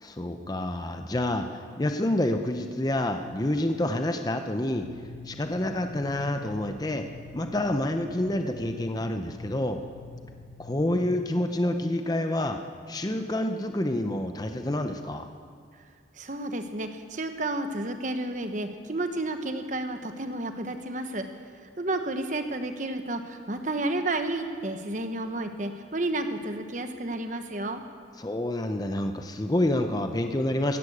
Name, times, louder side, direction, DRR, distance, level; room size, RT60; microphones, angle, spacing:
voice 1, 0.0-9.8 10.6-12.6 12.9-15.3 28.2-30.8, left 1 dB, 20° left, 6 dB, 0.6 m, -28 dB
sound 1, 4.7-11.1, left 3 dB, 10° right, 2.1 m, -46 dB
voice 2, 16.2-21.3 21.8-27.8, right 2 dB, 40° right, 7 dB, 1.0 m, -31 dB
14.5 x 11.5 x 8.6 m, 2.1 s
head